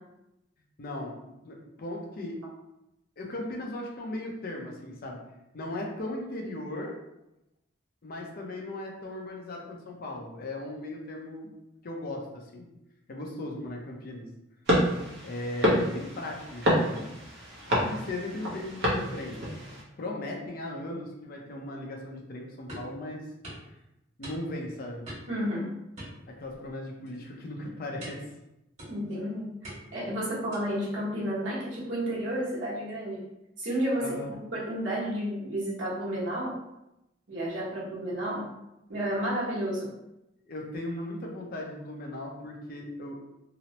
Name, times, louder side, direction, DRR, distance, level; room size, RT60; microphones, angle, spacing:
voice 1, 0.8-1.2 1.4-2.4 3.2-5.2 5.5-6.9 8.0-11.5 11.8-12.7 13.1-14.3 15.2-17.1 17.7-19.4 20.0-23.2 24.2-25.1 26.4-28.2 34.0-34.3 40.5-43.2, left 1 dB, 50° left, 0 dB, 0.5 m, -37 dB
sound 1, 14.7-19.8, equal, 60° right, 0.8 m, -28 dB
sound 2, 22.7-23.0 23.4-23.7 24.2-24.7 25.0-25.4 26.0-26.7 27.0-27.3 28.0-28.3 28.8-29.2 29.6-30.0 30.5-30.8, right 1 dB, 40° right, 1.3 m, -44 dB
voice 2, 25.3-25.7 28.9-29.5 29.9-33.3 33.6-34.1 34.5-36.5 37.3-38.4 38.9-39.9, equal, 80° right, -6 dB, 1.0 m, -31 dB
2.9 x 2.0 x 2.8 m, 0.90 s
head